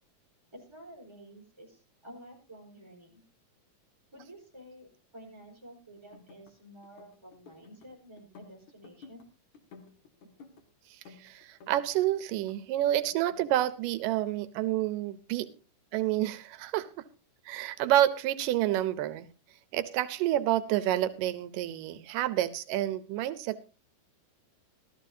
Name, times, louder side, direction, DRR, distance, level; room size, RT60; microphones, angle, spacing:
voice 1, 0.5-3.2 4.1-9.2, right 1 dB, 10° right, -2 dB, 4.5 m, -51 dB
sound 1, 6.0-6.5 6.8-7.9 8.2-9.3 9.5-10.6 11.1-12.1 12.3-13.5, left 4 dB, 60° left, 3.1 m, -54 dB
voice 2, 11.2-15.5 15.9-16.9 17.5-19.3 19.7-23.6, right 13 dB, 90° right, 13 dB, 2.4 m, -29 dB
16.0 x 13.5 x 2.7 m, 0.32 s
omnidirectional pair, 3.7 m